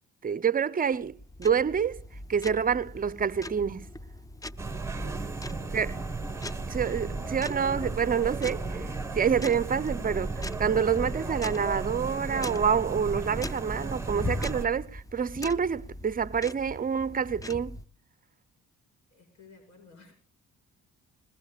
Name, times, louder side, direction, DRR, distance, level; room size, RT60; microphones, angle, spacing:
voice 1, 0.2-1.1 1.4-2.0 2.3-3.9 5.7-6.0 6.7-17.7, right 7 dB, 30° right, 0.6 m, -27 dB
sound 1, 0.9-17.9, left 2 dB, 10° left, 0.5 m, -41 dB
sound 2, 4.6-14.7, right 3 dB, 10° right, 1.3 m, -35 dB
voice 2, 5.5-5.8 19.1-20.1, left 4 dB, 75° left, 6.1 m, -54 dB
21.0 x 19.5 x 2.3 m
cardioid pair, 90°, 30 cm